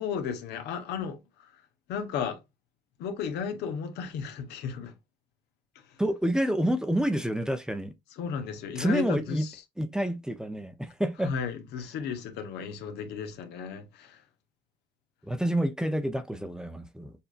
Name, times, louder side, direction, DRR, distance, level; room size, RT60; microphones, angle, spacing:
voice 1, 0.0-1.6 1.9-2.4 3.0-4.9 5.9-6.0 8.2-9.6 11.2-14.2, left 6 dB, 80° left, 1.1 m, -34 dB
voice 2, 6.0-7.9 8.8-9.5 9.8-11.3 15.2-17.1, right 1 dB, 5° right, 0.7 m, -28 dB
6.9 x 2.7 x 2.5 m
cardioid pair, 110°, 17 cm